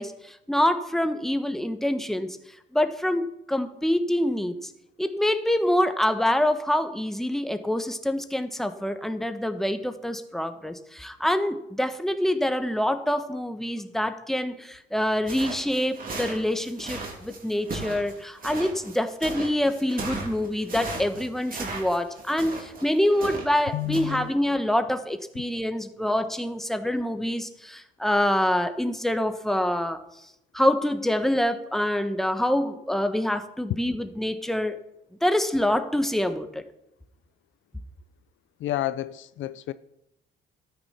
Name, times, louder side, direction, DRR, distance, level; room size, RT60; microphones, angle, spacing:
voice 1, 0.0-2.3 2.7-4.7 5.0-30.0 30.5-34.8 35.2-36.6, left 1 dB, ahead, 1.3 m, -26 dB
sound 1, 15.3-23.6 23.9-24.2, right 3 dB, 45° right, 3.7 m, -36 dB
voice 2, 23.7-24.3 38.6-39.7, left 14 dB, 75° left, 0.6 m, -30 dB
13.0 x 9.6 x 5.8 m
cardioid pair, 90°, 20 cm